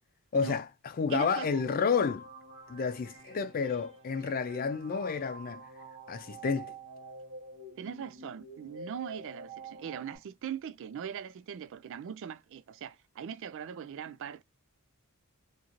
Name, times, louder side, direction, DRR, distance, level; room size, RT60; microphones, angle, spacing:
voice 1, 0.3-2.3 2.7-5.6 6.1-6.7, left 5 dB, 40° left, 0.4 m, -30 dB
voice 2, 1.1-1.5 7.8-14.4, right 8 dB, 60° right, 0.3 m, -40 dB
sound 1, 1.4-10.2, right 2 dB, 85° right, 1.2 m, -48 dB
2.9 x 2.6 x 2.4 m
head